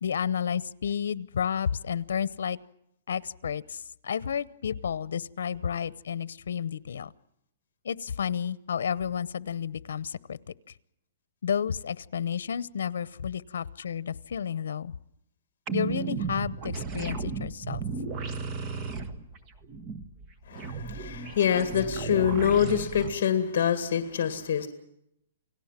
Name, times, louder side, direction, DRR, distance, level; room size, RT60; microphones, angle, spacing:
voice 1, 0.0-2.6 3.1-7.1 7.8-10.4 11.4-14.9 15.7-17.8, left 8 dB, 85° left, 20 dB, 0.8 m, -31 dB
sound 1, 15.7-23.1, right 5 dB, 25° right, 1.4 m, -34 dB
voice 2, 20.5-24.7, left 8 dB, 50° left, 9 dB, 2.1 m, -25 dB
29.0 x 18.5 x 7.5 m, 0.78 s
hypercardioid pair, 170°, 0 cm